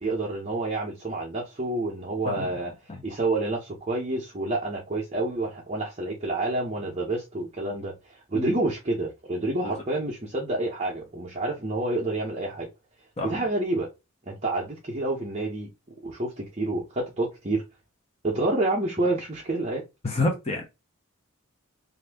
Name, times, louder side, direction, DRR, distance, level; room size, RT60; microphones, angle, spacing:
voice 1, 0.0-2.7 3.0-7.9 8.3-12.7 13.2-13.9 14.3-15.7 16.0-17.6 18.2-19.8, right 2 dB, 30° right, 0.7 m, -28 dB
voice 2, 20.0-20.7, left 2 dB, 30° left, 0.7 m, -28 dB
2.7 x 2.5 x 3.4 m
head